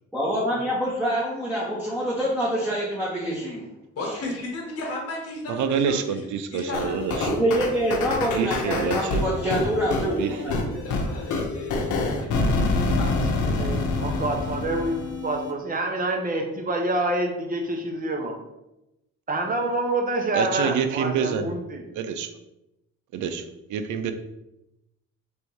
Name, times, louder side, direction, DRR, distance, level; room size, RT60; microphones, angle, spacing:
voice 1, 0.1-3.7 4.0-4.2 7.3-10.8, right 1 dB, 5° right, -7 dB, 1.1 m, -26 dB
voice 2, 3.9-7.3 10.6-14.4, left 2 dB, 55° left, 0 dB, 1.3 m, -36 dB
voice 3, 5.5-7.3 8.3-9.2 10.2-10.6 20.3-21.6 21.9-22.3 23.1-24.1, right 6 dB, 75° right, 8 dB, 0.5 m, -27 dB
sound 1, 6.7-15.5, left 3 dB, 80° left, 0.7 m, -27 dB
voice 4, 13.4-18.4 19.3-21.8, right 2 dB, 30° right, 2 dB, 0.9 m, -27 dB
3.4 x 2.6 x 4.5 m, 0.90 s
cardioid pair, 90°, 30 cm